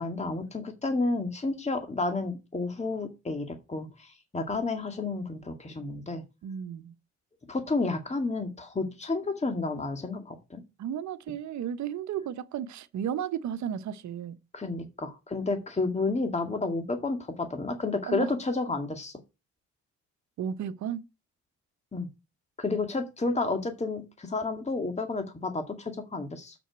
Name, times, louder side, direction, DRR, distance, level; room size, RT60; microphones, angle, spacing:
voice 1, 0.0-6.2 7.5-10.6 14.5-19.2 21.9-22.1 22.6-26.6, left 3 dB, 20° left, 2.0 m, -31 dB
voice 2, 6.4-6.9 10.8-14.4 18.1-18.3 20.4-21.0, right 9 dB, 70° right, 1.1 m, -33 dB
7.1 x 6.5 x 7.8 m
cardioid pair, 90°, 30 cm